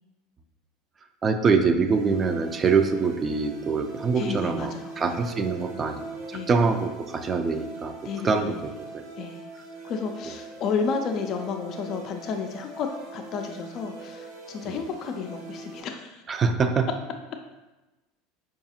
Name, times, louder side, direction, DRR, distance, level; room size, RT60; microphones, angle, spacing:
voice 1, 1.2-7.9 8.2-9.3 14.6-14.8 16.3-16.9, right 5 dB, 30° right, 7 dB, 0.4 m, -25 dB
sound 1, 1.8-15.8, right 3 dB, 85° right, 1.1 m, -41 dB
voice 2, 4.2-5.3 6.3-6.5 8.0-8.5 9.2-9.4 9.8-16.2, left 5 dB, 45° left, 4 dB, 0.4 m, -32 dB
4.6 x 2.4 x 2.8 m, 1.1 s
supercardioid pair, 100°, 0 cm